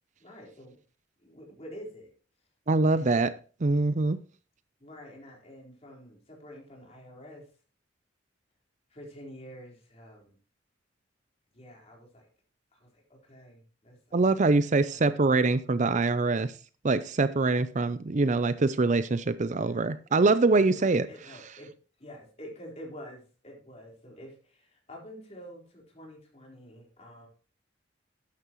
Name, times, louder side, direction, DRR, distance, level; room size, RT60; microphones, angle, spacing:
voice 1, 0.2-0.8 1.2-2.1 2.9-3.2 4.8-7.5 8.9-10.4 11.5-12.3 12.7-15.1 19.5-19.9 20.6-21.7 22.0-27.3, equal, 35° left, 4.2 m, -48 dB
voice 2, 2.7-3.3 3.6-4.2 14.1-16.5 16.8-21.1, right 3 dB, 40° right, 0.5 m, -24 dB
12.5 x 9.8 x 3.1 m
head